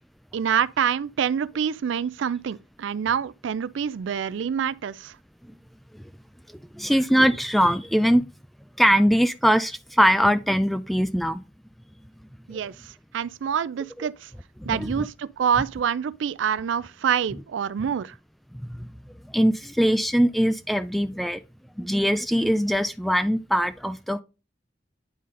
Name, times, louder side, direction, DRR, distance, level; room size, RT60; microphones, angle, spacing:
voice 1, 0.3-5.1 12.5-12.7 13.1-14.3 14.7-18.1, right 8 dB, 75° right, 0.3 m, -26 dB
voice 2, 6.7-8.3 8.8-11.4 12.5-12.6 14.6-15.1 18.5-18.9 19.3-21.4 21.8-24.2, equal, ahead, 0.3 m, -22 dB
9.3 x 4.1 x 3.7 m
head